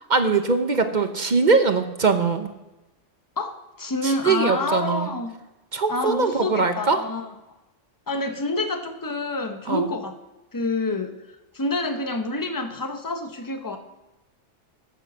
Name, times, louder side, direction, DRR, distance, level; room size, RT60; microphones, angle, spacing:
voice 1, 0.1-2.5 4.0-5.1 5.7-7.0 9.7-9.9, right 4 dB, 40° right, 7 dB, 0.9 m, -21 dB
voice 2, 3.4-5.3 5.9-7.3 8.1-10.1 10.5-11.2 11.5-13.8, left 2 dB, 20° left, 6 dB, 1.0 m, -27 dB
9.2 x 8.2 x 7.1 m, 1.0 s
omnidirectional pair, 1.2 m